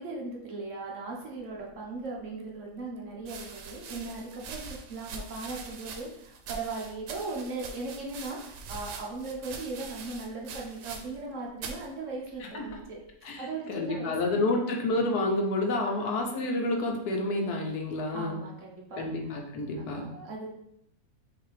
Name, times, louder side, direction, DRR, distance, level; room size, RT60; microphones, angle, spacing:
voice 1, 0.0-13.0 13.4-14.6 15.8-16.1 18.1-19.1 19.8-20.5, right 3 dB, 55° right, -2 dB, 1.2 m, -38 dB
sound 1, 2.1-2.2 3.2-11.3 11.6-11.9 12.6-13.0, right 4 dB, 90° right, 1.3 m, -43 dB
voice 2, 13.2-18.4 19.0-20.1, left 2 dB, 75° left, 1 dB, 1.2 m, -29 dB
5.8 x 2.8 x 3.2 m, 0.75 s
omnidirectional pair, 1.8 m